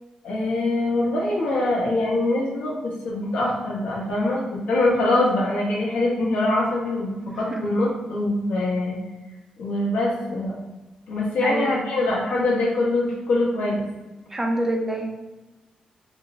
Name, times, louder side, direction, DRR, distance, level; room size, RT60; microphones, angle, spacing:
voice 1, 0.2-9.0 9.6-10.5 11.1-13.8, left 2 dB, 85° left, -4 dB, 0.9 m, -23 dB
voice 2, 14.3-15.1, right 1 dB, 15° right, 2 dB, 0.4 m, -25 dB
3.5 x 2.0 x 2.7 m, 1.1 s
cardioid pair, 120°, 2 cm